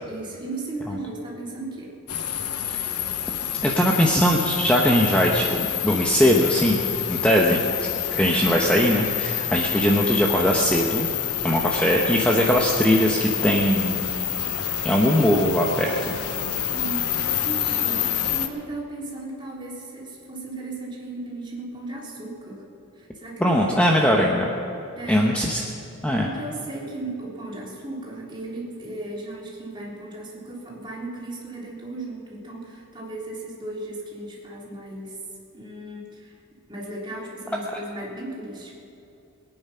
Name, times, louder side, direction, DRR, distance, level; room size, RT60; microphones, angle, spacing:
voice 1, 0.1-2.0 16.7-22.6 22.9-24.1 25.0-25.3 26.2-35.2 35.5-36.4 36.7-38.7, right 2 dB, 20° right, -4 dB, 3.5 m, -36 dB
sound 1, 2.1-18.5, left 10 dB, 90° left, 1.0 m, -28 dB
voice 2, 3.6-6.8 7.1-11.1 11.4-14.1 14.8-16.1 23.4-24.5 25.1-25.6 26.0-26.3, equal, 5° left, -1 dB, 1.0 m, -20 dB
22.0 x 9.5 x 5.7 m, 2.7 s
head